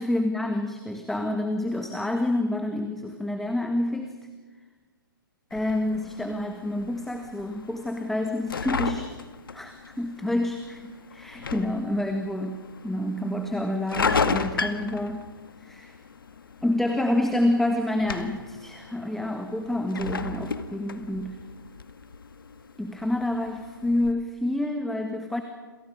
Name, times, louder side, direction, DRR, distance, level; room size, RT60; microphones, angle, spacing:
voice 1, 0.0-4.1 5.5-9.1 9.5-15.3 15.6-16.0 16.6-21.4 22.8-25.4, left 1 dB, ahead, 5 dB, 1.6 m, -28 dB
sound 1, 5.5-24.1, left 5 dB, 70° left, 2.0 m, -35 dB
28.5 x 28.0 x 5.1 m, 1.4 s
figure-of-eight pair, 130°, 12 cm